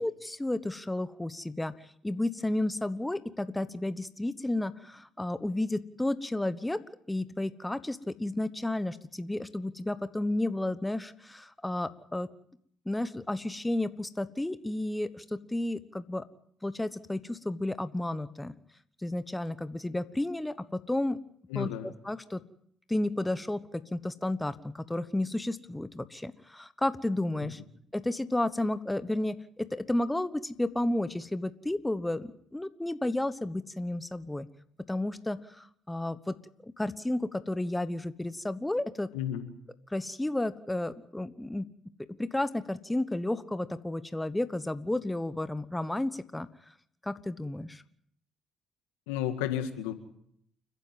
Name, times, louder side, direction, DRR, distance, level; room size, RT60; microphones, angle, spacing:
voice 1, 0.0-6.8 7.1-12.3 12.9-16.2 16.6-18.5 19.0-21.2 21.5-22.4 22.9-27.6 27.9-34.5 34.9-36.4 36.6-39.1 39.9-41.7 42.2-46.5 47.0-47.8, left 1 dB, 10° left, 13 dB, 1.2 m, -32 dB
voice 2, 21.5-21.9 27.4-27.5 39.1-39.5 49.1-49.9, left 10 dB, 85° left, 8 dB, 1.9 m, -32 dB
29.5 x 10.5 x 9.1 m, 0.68 s
hypercardioid pair, 55°, 0 cm